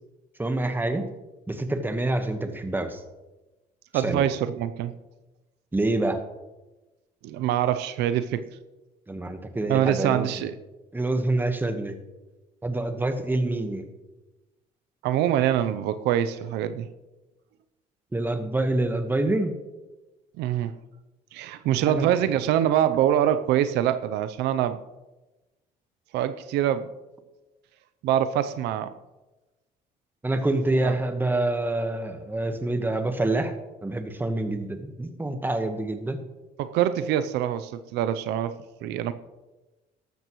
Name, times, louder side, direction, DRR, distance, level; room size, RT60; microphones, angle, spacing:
voice 1, 0.4-1.1 1.5-3.0 3.9-4.2 5.7-6.2 9.1-10.3 10.9-12.0 12.6-13.9 18.1-19.5 21.9-22.1 30.2-33.5 33.8-36.2, right 2 dB, 10° right, 7 dB, 1.3 m, -26 dB
voice 2, 3.9-4.9 7.2-8.4 9.7-10.5 15.0-16.9 20.4-20.8 21.3-24.8 26.1-26.9 28.0-28.9 30.8-30.9 36.6-39.1, right 11 dB, 85° right, 11 dB, 0.6 m, -24 dB
14.0 x 12.0 x 3.1 m, 1.1 s
cardioid pair, 110°, 17 cm